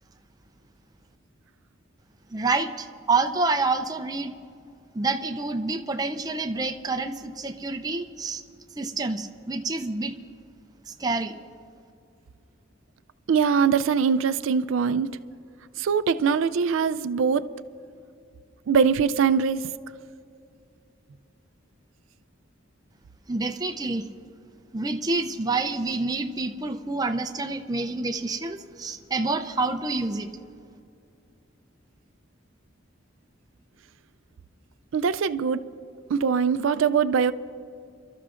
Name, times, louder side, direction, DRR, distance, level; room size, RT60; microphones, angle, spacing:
voice 1, 2.3-4.3 4.9-8.4 8.8-10.2 10.9-11.4 23.3-24.1 24.7-30.3, right 3 dB, 20° right, 6 dB, 0.5 m, -28 dB
voice 2, 13.3-15.1 15.8-17.4 18.7-19.6 34.9-35.6 36.1-37.3, right 6 dB, 80° right, 12 dB, 0.4 m, -22 dB
29.0 x 13.0 x 2.5 m, 2.5 s
head